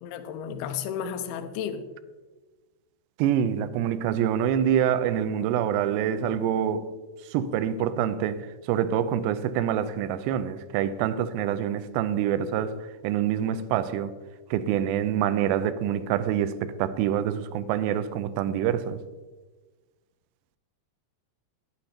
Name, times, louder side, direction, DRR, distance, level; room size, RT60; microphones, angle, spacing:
voice 1, 0.0-1.9, left 8 dB, 80° left, 2.5 m, -33 dB
voice 2, 3.2-6.9 7.3-14.1 14.5-19.0, right 9 dB, 90° right, 2.7 m, -26 dB
9.7 x 9.0 x 4.3 m
omnidirectional pair, 4.8 m